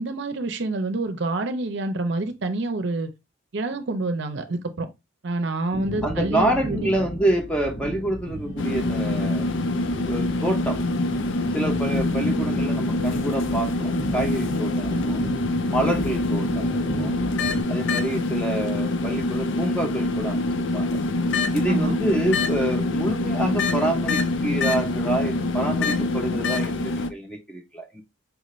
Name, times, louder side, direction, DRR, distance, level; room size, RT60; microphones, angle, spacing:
voice 1, 0.0-3.1 3.5-4.9 5.2-6.9 21.7-22.0, right 2 dB, 60° right, 0.6 m, -27 dB
sound 1, 5.7-17.6, right 1 dB, 90° left, 1.5 m, -34 dB
voice 2, 6.0-9.5 10.0-10.8 11.5-15.2 15.7-17.1 17.7-20.9 21.5-28.0, right 1 dB, 5° left, 0.7 m, -27 dB
sound 2, 8.6-27.1, left 2 dB, 65° left, 0.4 m, -25 dB
4.8 x 2.5 x 3.1 m
head